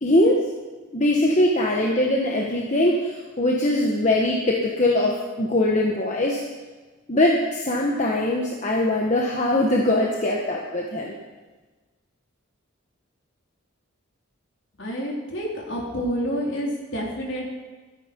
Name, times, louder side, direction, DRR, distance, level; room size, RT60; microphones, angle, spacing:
voice 1, 0.0-0.4 0.9-6.4 7.1-11.1, left 1 dB, 35° left, -1 dB, 1.3 m, -21 dB
voice 2, 14.8-17.5, equal, 55° left, -2 dB, 3.9 m, -28 dB
16.0 x 13.5 x 5.4 m, 1.3 s
head